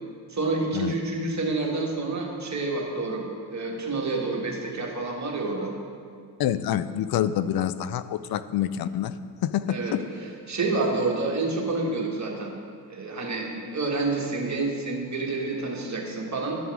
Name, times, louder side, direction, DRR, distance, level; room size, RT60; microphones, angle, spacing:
voice 1, 0.3-3.2 3.5-5.7 9.7-10.0 10.5-12.5 12.9-16.6, right 3 dB, 35° right, -1 dB, 2.0 m, -28 dB
voice 2, 6.4-9.2 9.4-10.1, left 10 dB, 50° left, 14 dB, 0.5 m, -27 dB
12.0 x 6.9 x 3.7 m, 2.2 s
hypercardioid pair, 45°, 49 cm